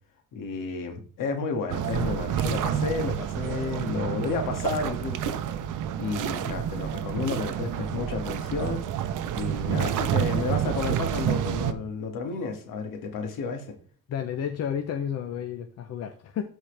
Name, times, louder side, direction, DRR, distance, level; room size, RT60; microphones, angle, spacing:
voice 1, 0.3-5.4 6.0-8.9 9.3-13.8, left 4 dB, 75° left, 2.1 m, -31 dB
sound 1, 1.7-11.7, right 9 dB, 65° right, 0.8 m, -29 dB
voice 2, 14.1-16.4, left 8 dB, 50° left, 0.8 m, -31 dB
13.5 x 4.5 x 3.4 m
cardioid pair, 160°, 33 cm